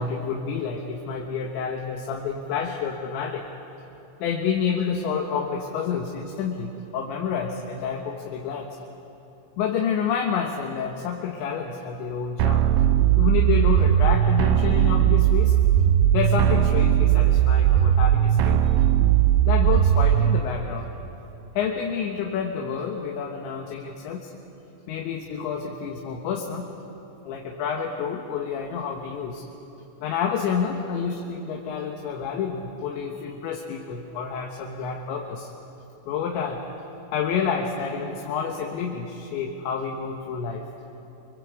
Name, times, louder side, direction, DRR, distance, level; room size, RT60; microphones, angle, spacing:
voice 1, 0.0-3.4 4.2-8.7 9.6-12.7 13.2-15.6 16.1-18.7 19.5-20.9 21.6-24.3 24.9-26.7 27.2-29.5 30.0-35.5 36.1-36.6 37.1-40.7, left 6 dB, 85° left, 1 dB, 3.8 m, -29 dB
sound 1, 12.4-20.4, right 11 dB, 80° right, 2.7 m, -19 dB
25.5 x 24.5 x 8.5 m, 2.9 s
omnidirectional pair, 5.1 m